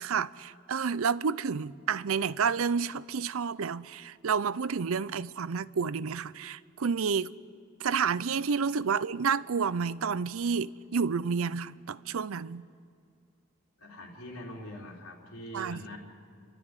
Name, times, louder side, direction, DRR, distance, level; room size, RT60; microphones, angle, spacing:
voice 1, 0.0-7.3 7.8-12.7 15.5-15.8, right 6 dB, 75° right, 0.5 m, -30 dB
voice 2, 13.8-16.0, equal, 90° left, 3.8 m, -43 dB
29.5 x 13.0 x 9.7 m
head